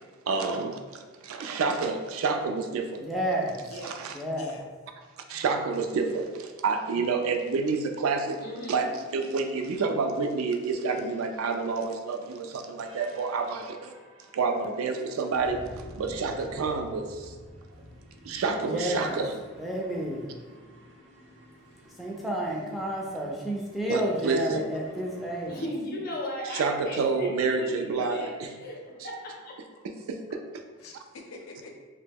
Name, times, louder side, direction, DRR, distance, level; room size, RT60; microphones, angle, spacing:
voice 1, 0.3-3.0 3.8-4.1 5.3-8.4 8.7-13.9 14.3-15.6 15.9-17.3 18.2-19.3 23.9-24.6 26.5-28.5 30.1-30.4, right 4 dB, 90° right, 6 dB, 0.3 m, -28 dB
voice 2, 3.0-3.6 4.2-4.5 18.6-19.2 19.6-20.3 22.0-25.6, right 1 dB, ahead, -3 dB, 0.3 m, -30 dB
voice 3, 3.7-4.0 4.4-4.6 18.8-19.4 30.8-31.8, left 2 dB, 90° left, 1 dB, 0.5 m, -45 dB
voice 4, 8.4-8.9 25.5-29.6, left 1 dB, 45° left, -1 dB, 0.6 m, -37 dB
sound 1, 10.6-25.6, equal, 60° right, 0.7 m, -51 dB
2.9 x 2.1 x 3.3 m, 1.4 s
head